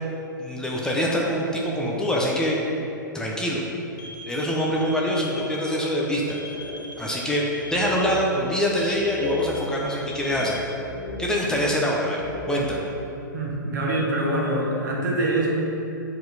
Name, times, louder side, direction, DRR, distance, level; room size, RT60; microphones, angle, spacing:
voice 1, 0.4-2.6 3.1-3.6 4.3-6.4 7.0-7.4 7.7-10.6 11.2-12.8, equal, 5° left, -3 dB, 0.8 m, -24 dB
sound 1, 4.0-5.6 6.3-8.1 8.8-10.6, left 2 dB, 60° left, 1.1 m, -42 dB
sound 2, 6.5-7.3 7.6-8.6 9.0-11.8 12.1-13.1, left 2 dB, 40° left, 1.2 m, -35 dB
voice 2, 13.3-15.5, right 1 dB, 65° right, -2 dB, 1.6 m, -24 dB
7.6 x 4.6 x 4.1 m, 2.8 s
hypercardioid pair, 120°, 11 cm